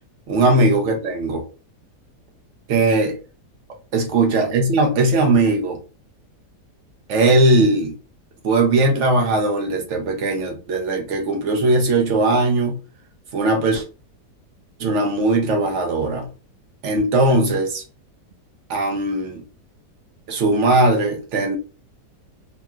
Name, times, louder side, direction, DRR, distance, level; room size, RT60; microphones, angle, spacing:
voice 1, 0.3-1.4 2.7-3.2 3.9-5.8 7.1-8.0 8.4-12.8 13.3-13.8 14.8-16.3 16.8-17.8 18.7-19.4 20.3-21.6, right 2 dB, 60° right, 0.8 m, -19 dB
2.9 x 2.7 x 2.3 m
omnidirectional pair, 1.8 m